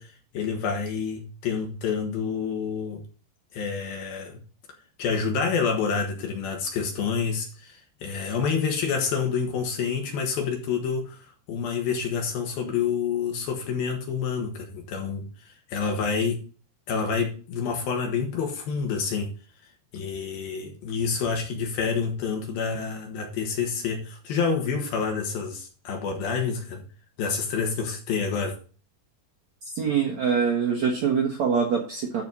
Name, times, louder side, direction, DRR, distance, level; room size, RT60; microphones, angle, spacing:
voice 1, 0.0-3.0 3.5-4.4 5.0-16.4 16.9-19.3 19.9-26.8 27.2-28.6, left 6 dB, 65° left, 3.0 m, -28 dB
voice 2, 29.7-32.2, right 6 dB, 70° right, 1.7 m, -24 dB
12.0 x 4.2 x 5.4 m
omnidirectional pair, 5.2 m